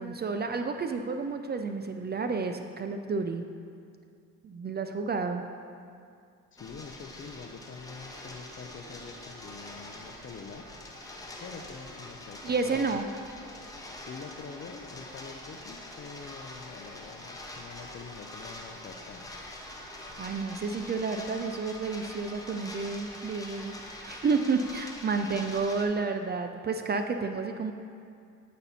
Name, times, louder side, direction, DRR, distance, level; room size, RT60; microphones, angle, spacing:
voice 1, 0.0-3.5 4.4-5.5 12.4-13.1 19.9-23.7 24.0-27.7, right 4 dB, 30° right, 6 dB, 0.4 m, -30 dB
voice 2, 6.5-10.6 11.4-13.0 14.1-19.3, left 5 dB, 35° left, 7 dB, 0.6 m, -45 dB
sound 1, 6.6-25.9, left 1 dB, 10° left, 1.0 m, -44 dB
8.0 x 4.2 x 4.2 m, 2.4 s
supercardioid pair, 65°, 34 cm